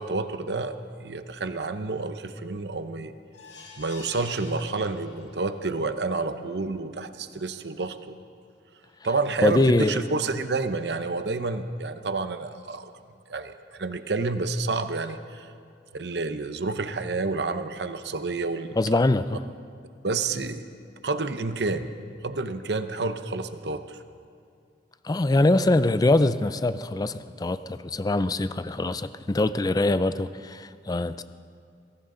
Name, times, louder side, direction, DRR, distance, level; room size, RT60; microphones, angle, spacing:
voice 1, 0.0-3.1 3.8-8.1 9.0-12.9 13.3-15.5 15.9-18.8 20.0-20.6 21.0-21.9 22.2-24.0, right 3 dB, 65° right, 0.8 m, -29 dB
sound 1, 3.3-5.6 6.0-6.1 6.5-6.6, left 4 dB, 80° left, 2.5 m, -47 dB
voice 2, 9.4-10.0 18.8-19.4 25.0-31.2, left 2 dB, 20° left, 0.4 m, -23 dB
22.5 x 16.5 x 3.9 m
head